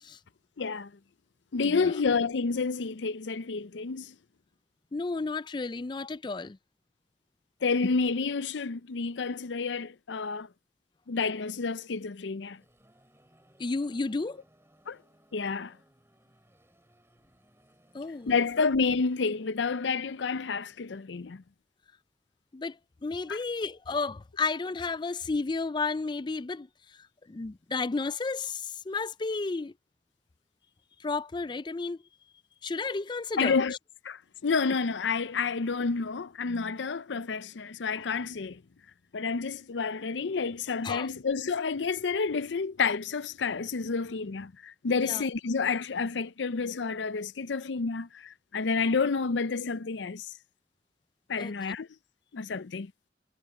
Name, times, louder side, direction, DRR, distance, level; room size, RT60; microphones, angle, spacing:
voice 1, 0.6-0.9 1.5-4.1 7.6-10.5 11.1-12.6 14.9-15.0 15.3-15.7 18.3-21.4 23.3-23.4 33.4-33.8 34.0-38.6 39.1-50.3 51.3-51.9 52.3-52.9, left 4 dB, 75° left, 0.6 m, -29 dB
voice 2, 1.6-1.9 4.9-6.6 13.6-14.4 17.9-18.4 22.5-26.7 27.3-29.7 31.0-32.0 32.6-33.6 40.8-41.1 45.0-45.3 51.4-51.5, left 3 dB, 25° left, 0.4 m, -32 dB
sound 1, 12.2-19.9, right 1 dB, 15° right, 4.3 m, -64 dB
head